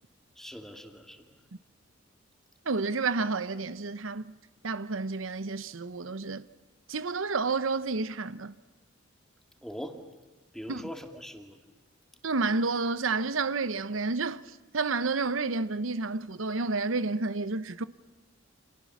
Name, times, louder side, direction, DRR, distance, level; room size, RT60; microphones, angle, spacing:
voice 1, 0.4-1.3 9.6-10.0 10.5-11.6, equal, ahead, 2.3 m, -41 dB
voice 2, 2.6-4.3 4.6-6.5 6.9-8.5 10.7-10.8 12.2-17.8, right 3 dB, 90° right, 0.9 m, -30 dB
29.5 x 27.5 x 7.2 m
head